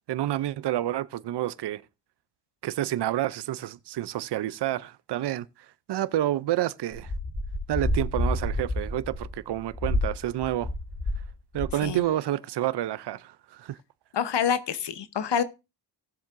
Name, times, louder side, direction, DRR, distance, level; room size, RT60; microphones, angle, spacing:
voice 1, 0.1-1.8 2.6-5.5 5.9-7.1 7.7-10.7 11.5-13.8, right 13 dB, 75° right, 0.5 m, -29 dB
sound 1, 6.9-11.3 11.5-11.9, left 1 dB, 45° left, 2.8 m, -29 dB
voice 2, 14.1-15.4, left 8 dB, 85° left, 0.9 m, -27 dB
17.5 x 7.3 x 2.5 m
wide cardioid pair, 100°, 41 cm